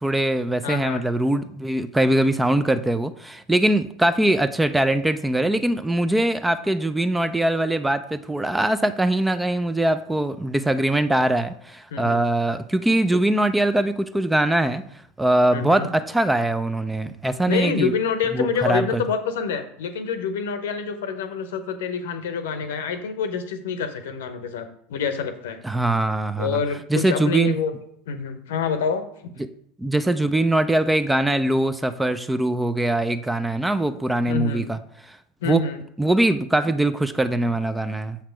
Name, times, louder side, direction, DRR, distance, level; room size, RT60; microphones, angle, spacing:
voice 1, 0.0-14.8 15.2-17.9 18.3-19.0 25.6-26.6 26.9-27.6 29.8-34.8 35.1-35.2 35.5-35.6 36.0-38.2, right 1 dB, 10° right, 11 dB, 0.4 m, -22 dB
voice 2, 0.6-1.0 11.9-12.2 15.5-15.9 17.5-25.6 26.4-27.7 28.1-29.3 34.3-34.6 35.4-35.8, left 6 dB, 65° left, 9 dB, 0.8 m, -27 dB
7.2 x 5.8 x 4.5 m, 0.69 s
figure-of-eight pair, 75°, 0 cm